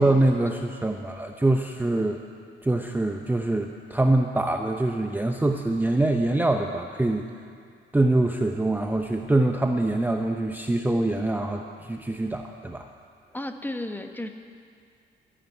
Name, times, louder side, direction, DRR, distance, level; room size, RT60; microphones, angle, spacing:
voice 1, 0.0-2.2 2.6-7.2 7.9-12.8, right 2 dB, 10° right, 4 dB, 0.8 m, -24 dB
voice 2, 13.3-14.3, left 1 dB, 10° left, 6 dB, 1.2 m, -33 dB
13.5 x 10.0 x 9.3 m, 2.2 s
cardioid pair, 90°, 20 cm